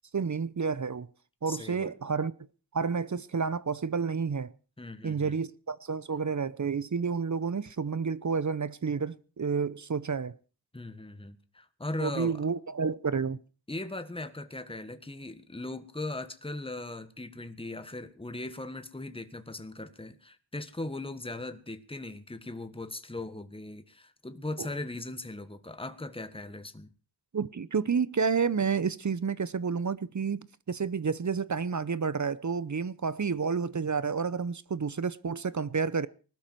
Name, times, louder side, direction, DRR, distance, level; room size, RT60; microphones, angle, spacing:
voice 1, 0.1-1.1 1.4-2.3 2.7-4.5 5.0-10.3 12.0-13.4 24.6-24.7 27.3-36.1, right 5 dB, 45° right, 0.8 m, -30 dB
voice 2, 1.5-1.9 4.8-5.3 10.7-12.4 13.7-26.9, left 2 dB, 15° left, 1.5 m, -39 dB
20.0 x 13.0 x 4.7 m
wide cardioid pair, 80°, 41 cm